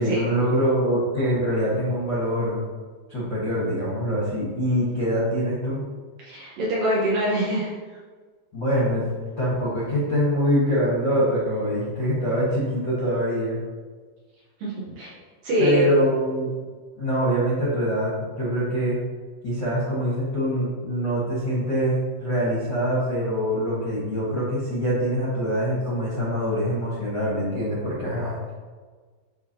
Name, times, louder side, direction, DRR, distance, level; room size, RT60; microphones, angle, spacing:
voice 1, 0.0-2.6 3.1-5.8 8.5-9.1 9.4-13.6 15.6-16.5 17.0-19.0 19.4-28.5, equal, 70° left, -7 dB, 1.1 m, -24 dB
voice 2, 6.2-7.7 14.6-15.1 15.4-15.9, equal, 65° right, -6 dB, 2.3 m, -24 dB
10.5 x 3.7 x 2.9 m, 1.4 s
omnidirectional pair, 4.9 m